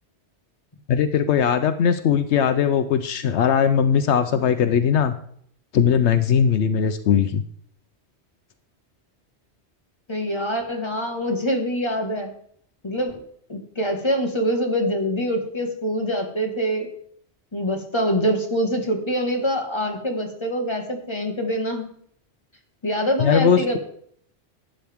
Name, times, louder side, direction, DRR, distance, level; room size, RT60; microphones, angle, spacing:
voice 1, 0.9-5.1 5.7-7.4 23.2-23.8, left 7 dB, 80° left, 10 dB, 0.9 m, -19 dB
voice 2, 10.1-12.3 12.8-13.2 13.5-16.9 17.5-21.9 22.8-23.8, equal, 25° left, 3 dB, 1.6 m, -24 dB
12.0 x 9.0 x 3.6 m, 0.64 s
omnidirectional pair, 1.1 m